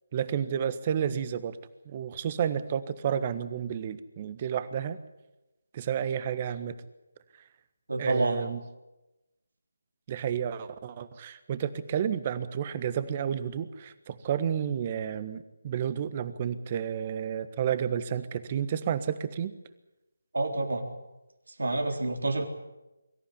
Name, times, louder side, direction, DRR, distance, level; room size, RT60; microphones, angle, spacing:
voice 1, 0.1-1.6 1.8-5.0 5.7-6.8 8.0-8.6 10.1-19.5 22.2-22.3, right 8 dB, 30° right, 13 dB, 1.4 m, -31 dB
voice 2, 7.9-8.5 20.3-20.9 21.5-22.4, right 2 dB, 75° right, 3 dB, 3.8 m, -28 dB
23.5 x 14.5 x 9.9 m, 1.0 s
figure-of-eight pair, 155°, 0 cm